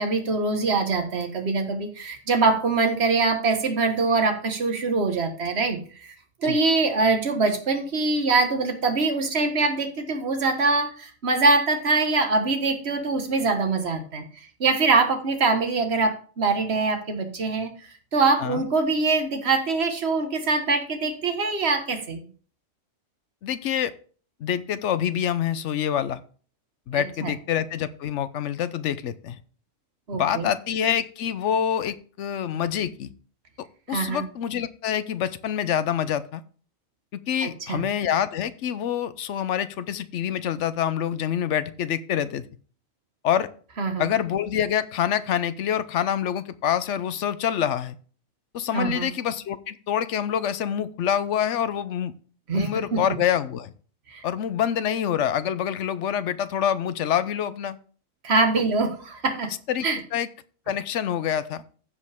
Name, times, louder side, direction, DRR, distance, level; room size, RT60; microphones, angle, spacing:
voice 1, 0.0-6.1 6.4-14.2 14.6-17.7 18.1-22.2 26.9-27.3 30.1-30.5 33.9-34.2 37.4-37.8 43.8-44.1 48.7-49.1 52.5-53.2 54.1-54.2 58.2-59.5 59.8-60.0, right 3 dB, 50° right, 5 dB, 1.7 m, -23 dB
voice 2, 23.4-23.9 24.4-26.2 26.9-29.4 30.1-33.1 33.6-36.4 37.1-42.4 43.2-43.5 44.0-48.0 48.5-52.1 52.5-53.7 54.2-57.8 59.7-59.9 60.1-60.3 60.7-61.6, left 9 dB, 65° left, 14 dB, 0.9 m, -26 dB
15.0 x 5.3 x 3.5 m, 0.41 s
omnidirectional pair, 1.4 m